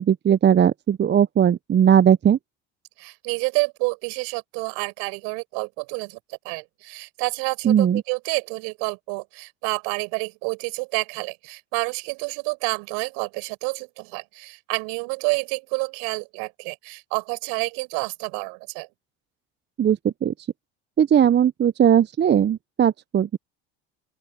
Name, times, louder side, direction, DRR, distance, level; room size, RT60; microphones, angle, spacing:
voice 1, 0.0-2.4 7.6-8.0 19.8-20.3 21.0-23.4, right 9 dB, 30° right, 0.8 m, -18 dB
voice 2, 3.0-18.9, right 35 dB, 70° right, 5.7 m, -29 dB
open air
hypercardioid pair, 70°, 36 cm